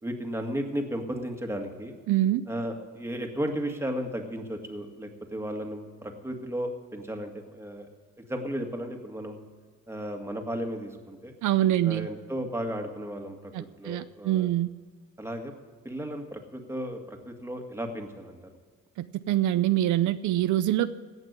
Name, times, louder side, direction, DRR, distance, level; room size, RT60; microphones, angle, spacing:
voice 1, 0.0-2.0 2.5-7.9 8.3-9.4 9.9-11.3 11.8-14.5 15.2-15.5 15.8-18.4, equal, 10° right, 3 dB, 1.9 m, -34 dB
voice 2, 2.1-2.4 11.4-12.1 13.5-14.7 19.0-20.9, right 13 dB, 75° right, 12 dB, 0.6 m, -25 dB
17.0 x 6.0 x 9.5 m, 1.5 s
cardioid pair, 90°, 30 cm